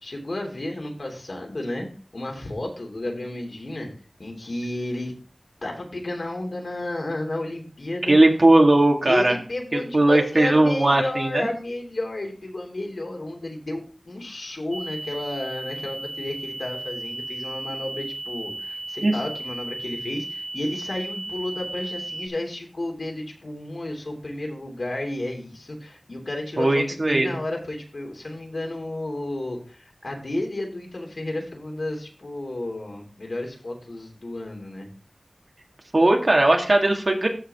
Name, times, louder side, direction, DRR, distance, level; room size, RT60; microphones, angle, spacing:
voice 1, 0.0-1.9 2.1-3.9 4.2-5.1 5.6-8.2 9.0-34.9, left 1 dB, 75° left, 2 dB, 3.0 m, -32 dB
voice 2, 8.0-9.3 9.7-11.5 19.0-19.1 26.6-27.4 35.9-37.3, right 2 dB, 60° right, 2 dB, 2.1 m, -18 dB
sound 1, 14.7-22.3, right 2 dB, 30° right, 1.4 m, -35 dB
13.5 x 5.1 x 3.7 m, 0.38 s
wide cardioid pair, 50°, 0 cm